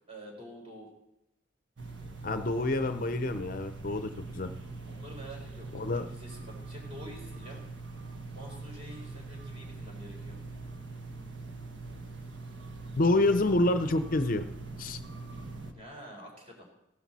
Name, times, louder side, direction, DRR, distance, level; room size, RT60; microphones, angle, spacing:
voice 1, 0.1-0.9 4.9-7.6 8.3-10.4 12.9-13.4 15.7-16.7, equal, 30° right, -1 dB, 4.1 m, -48 dB
sound 1, 1.8-15.7, right 3 dB, 75° right, 1.3 m, -43 dB
voice 2, 2.2-4.5 5.7-6.1 12.9-14.4 14.8-15.0, left 2 dB, 45° left, 9 dB, 0.6 m, -27 dB
16.0 x 12.0 x 4.2 m, 0.90 s
head